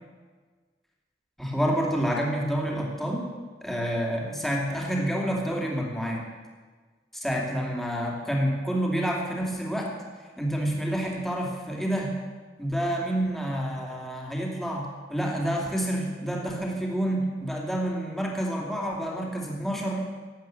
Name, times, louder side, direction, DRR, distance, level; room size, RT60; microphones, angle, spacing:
voice 1, 1.4-3.3 3.6-6.2 7.1-9.9 10.4-12.2 12.6-20.0, equal, ahead, -2 dB, 2.6 m, -28 dB
18.0 x 8.5 x 7.7 m, 1.5 s
head